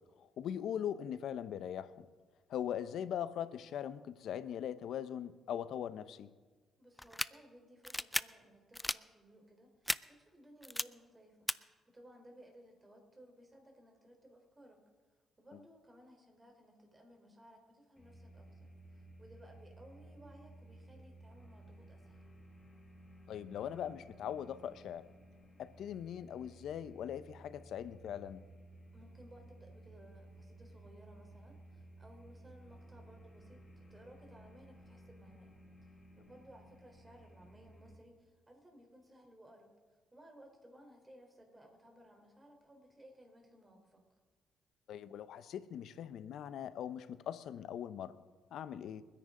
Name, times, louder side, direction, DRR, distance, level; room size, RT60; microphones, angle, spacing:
voice 1, 0.2-2.1 2.5-6.3 23.3-25.1 25.6-28.4 44.9-48.2 48.5-49.0, left 9 dB, 75° left, 13 dB, 0.8 m, -41 dB
voice 2, 6.8-11.5 11.9-14.8 15.4-22.2 28.9-35.5 35.8-35.9 36.2-39.7 40.1-44.0, equal, 20° right, 3 dB, 3.9 m, -59 dB
sound 1, 7.0-7.3 7.8-8.2 8.7-9.0 9.9-10.0 10.6-10.8 11.5-11.6, left 1 dB, 5° left, 0.4 m, -34 dB
sound 2, 18.0-37.9, right 1 dB, 25° left, 4.1 m, -57 dB
30.0 x 10.0 x 3.8 m, 1.4 s
cardioid pair, 90°, 0 cm